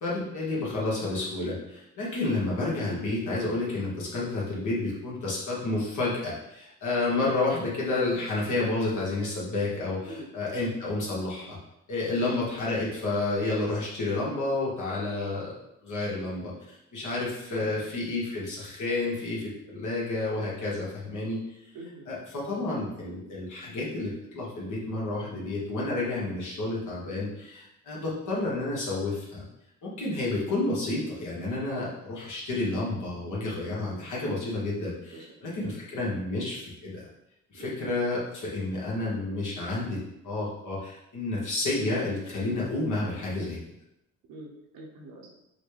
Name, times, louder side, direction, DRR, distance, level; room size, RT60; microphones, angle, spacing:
voice 1, 0.0-11.6 11.9-15.5 15.8-21.6 22.1-29.4 29.8-37.0 37.5-43.6, left 2 dB, 60° left, -5 dB, 1.3 m, -30 dB
voice 2, 21.7-22.1 22.5-22.7 35.1-35.3 35.6-35.7 37.5-37.8 44.3-45.3, right 1 dB, 70° right, -1 dB, 1.0 m, -44 dB
4.0 x 2.2 x 3.3 m, 0.85 s
supercardioid pair, 70°, 35 cm